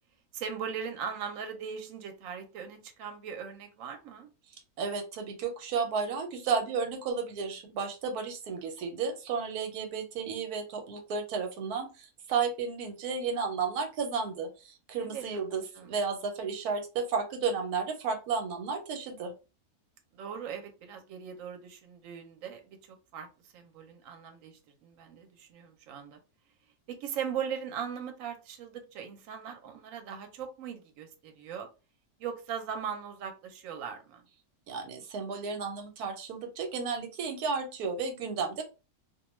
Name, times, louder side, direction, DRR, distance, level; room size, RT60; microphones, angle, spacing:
voice 1, 0.3-4.3 15.0-15.4 15.8-15.9 20.1-22.8 23.1-23.3 23.5-26.2 26.9-31.7 32.2-34.2, right 7 dB, 70° right, 1.0 m, -39 dB
voice 2, 4.8-19.3 34.7-38.6, right 5 dB, 90° right, 1.2 m, -33 dB
2.5 x 2.2 x 3.0 m
omnidirectional pair, 1.6 m